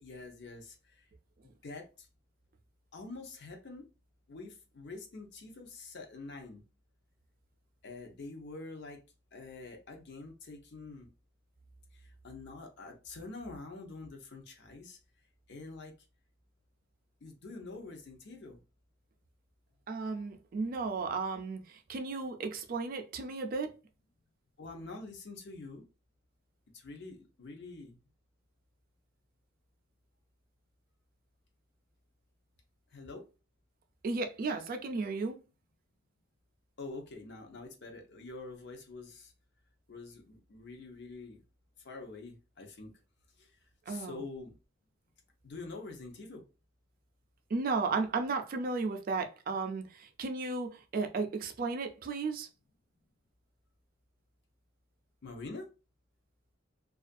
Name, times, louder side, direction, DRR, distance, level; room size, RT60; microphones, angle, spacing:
voice 1, 0.0-1.1 1.4-2.1 2.9-3.9 4.3-6.6 7.8-9.0 9.3-11.1 11.9-15.0 15.5-15.9 17.2-18.6 24.6-25.8 26.7-28.0 32.9-33.3 36.8-39.3 39.9-41.4 41.8-42.9 43.4-43.6 43.9-44.5 45.4-46.4 55.2-55.7, left 3 dB, 60° left, 0.6 m, -46 dB
voice 2, 19.9-23.7 34.0-35.4 43.9-44.2 47.5-52.5, right 4 dB, 45° right, 0.3 m, -34 dB
2.4 x 2.2 x 2.4 m
head